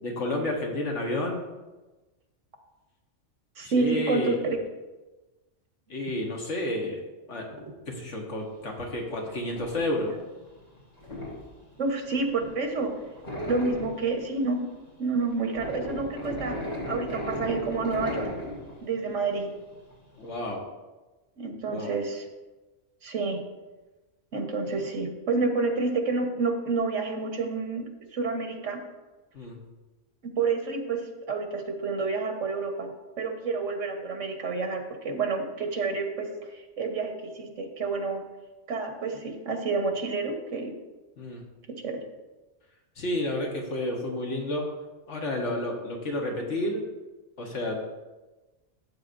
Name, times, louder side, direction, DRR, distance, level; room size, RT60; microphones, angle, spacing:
voice 1, 0.0-1.4 3.6-4.4 5.9-7.0 7.3-7.5 7.9-10.1 20.2-20.6 21.7-21.9 29.3-29.6 41.2-41.4 43.0-44.7 45.1-46.8 47.4-48.0, left 1 dB, 75° left, 0 dB, 1.5 m, -30 dB
voice 2, 3.6-4.6 11.8-12.9 13.5-14.6 15.0-16.6 16.9-18.3 18.8-19.5 21.4-22.2 23.0-23.4 24.3-27.8 28.1-28.8 30.4-31.0 31.3-32.9 33.2-38.2 38.7-40.7 41.7-42.0, right 4 dB, 85° right, 4 dB, 1.5 m, -29 dB
sound 1, 8.4-20.5, left 1 dB, 30° left, 3.1 m, -37 dB
13.0 x 8.0 x 2.6 m, 1.1 s
omnidirectional pair, 1.2 m